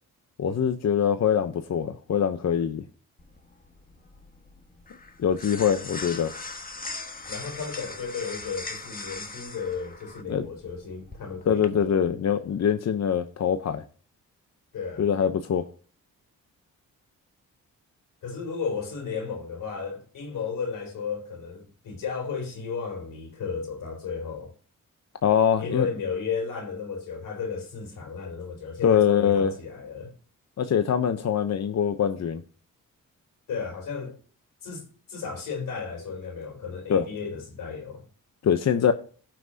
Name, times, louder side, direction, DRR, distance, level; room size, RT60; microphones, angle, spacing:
voice 1, 0.4-2.8 5.2-6.3 10.3-10.5 11.4-13.8 15.0-15.7 25.2-25.9 28.8-29.5 30.6-32.4 36.9-37.1 38.4-38.9, left 8 dB, 55° left, 0.9 m, -23 dB
sound 1, 3.2-11.7, left 3 dB, 25° left, 1.6 m, -40 dB
voice 2, 7.3-11.8 14.7-15.1 18.2-24.5 25.6-30.1 33.5-34.2 34.6-38.0, left 5 dB, 80° left, 3.8 m, -34 dB
17.0 x 6.0 x 2.8 m
cardioid pair, 75°, 32 cm